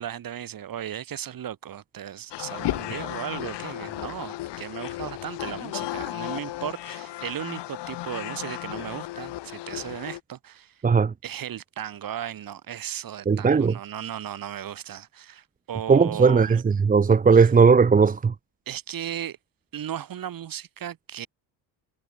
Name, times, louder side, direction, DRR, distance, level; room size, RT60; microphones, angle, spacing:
voice 1, 0.0-10.8 11.2-16.6 17.3-17.5 18.7-19.4 19.7-21.3, right 10 dB, 50° right, 7.8 m, -36 dB
sound 1, 2.3-10.2, left 15 dB, 70° left, 5.4 m, -34 dB
voice 2, 13.3-13.7 15.9-16.6 16.9-18.3, right 5 dB, 20° right, 0.9 m, -17 dB
cardioid pair, 120°, 44 cm